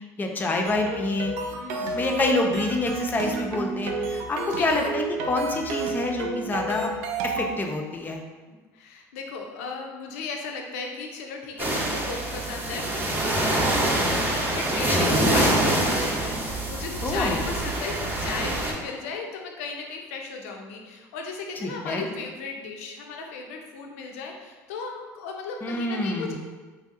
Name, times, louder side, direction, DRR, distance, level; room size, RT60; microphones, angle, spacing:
voice 1, 0.2-1.4 1.9-6.9 7.2-8.2 14.9-15.4 17.0-17.5 21.6-22.1 25.6-26.3, left 2 dB, 25° left, 2 dB, 0.5 m, -27 dB
sound 1, 0.6-7.5, right 3 dB, 80° right, 0.4 m, -31 dB
voice 2, 1.5-2.0 4.4-4.8 8.5-26.3, left 4 dB, 85° left, 2 dB, 0.4 m, -36 dB
sound 2, 11.6-18.7, right 1 dB, 25° right, 0.7 m, -25 dB
3.2 x 2.6 x 2.4 m, 1.3 s
supercardioid pair, 85°, 8 cm